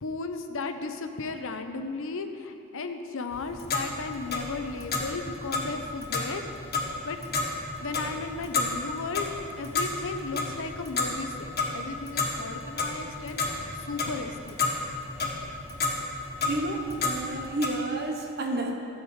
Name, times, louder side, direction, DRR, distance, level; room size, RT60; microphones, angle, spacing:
voice 1, 0.0-6.4 7.0-7.2 7.8-9.3 9.6-14.8, left 4 dB, 65° left, 7 dB, 0.7 m, -35 dB
Clock, 3.3-17.7, left 3 dB, 50° left, 1.6 m, -32 dB
voice 2, 16.4-18.7, right 2 dB, 50° right, 3 dB, 1.1 m, -30 dB
13.5 x 8.1 x 4.8 m, 2.6 s
head